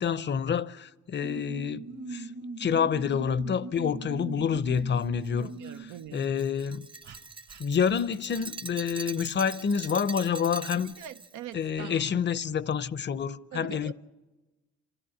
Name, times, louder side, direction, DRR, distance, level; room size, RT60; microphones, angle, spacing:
voice 1, 0.0-2.3 2.6-5.5 6.1-6.9 7.6-10.9 11.5-13.9, left 7 dB, 35° left, 0.6 m, -28 dB
sound 1, 1.2-6.0 7.0-7.2 7.5-7.6 7.9-8.0 8.3-8.4 11.8-12.3, right 4 dB, 65° right, 1.7 m, -41 dB
Glass, 5.0-11.3, right 4 dB, 15° right, 0.7 m, -43 dB
voice 2, 5.4-6.4 10.8-12.0 13.5-13.9, right 10 dB, 90° right, 0.7 m, -43 dB
27.5 x 14.0 x 8.6 m
cardioid pair, 90°, 30 cm